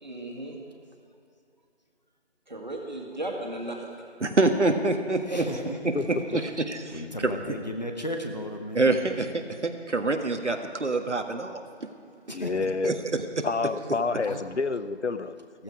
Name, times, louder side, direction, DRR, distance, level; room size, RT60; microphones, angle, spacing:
voice 1, 0.0-0.6 2.5-3.9 5.3-5.5, right 1 dB, 40° right, 0 dB, 2.2 m, -35 dB
voice 2, 4.2-5.4 6.1-7.3 8.8-11.9 12.8-13.5, right 2 dB, 75° right, 6 dB, 1.6 m, -26 dB
voice 3, 5.3-5.8 6.9-9.3 12.3-12.5 14.2-14.4 15.5-15.6, equal, 35° left, 4 dB, 1.2 m, -35 dB
voice 4, 12.3-12.9 13.4-15.5, left 4 dB, 70° left, 13 dB, 0.8 m, -28 dB
15.0 x 14.0 x 4.8 m, 2.5 s
figure-of-eight pair, 175°, 35 cm